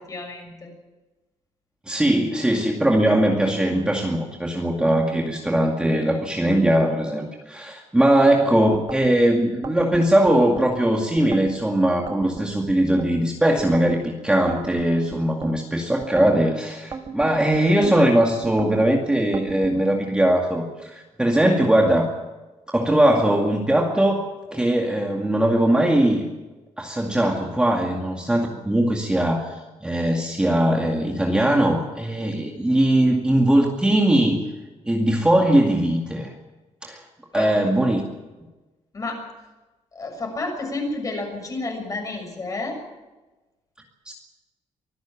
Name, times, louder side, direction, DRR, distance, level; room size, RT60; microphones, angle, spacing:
voice 1, 0.1-0.7 37.3-37.6 38.9-39.3 39.9-42.8, left 2 dB, 30° left, 3 dB, 6.7 m, -31 dB
voice 2, 1.9-22.1 22.7-26.3 26.8-34.4 34.8-36.3 36.8-37.0 37.3-38.0 44.1-44.2, right 1 dB, 10° right, 0 dB, 2.2 m, -20 dB
sound 1, 8.7-9.1 9.6-10.7 11.2-11.6 12.1-13.1 13.6-14.0 14.5-15.5 16.0-16.4 16.9-18.0 18.4-18.8 19.3-19.8, right 5 dB, 30° right, 1.9 m, -35 dB
24.5 x 15.5 x 7.3 m, 1.1 s
cardioid pair, 155°, 12 cm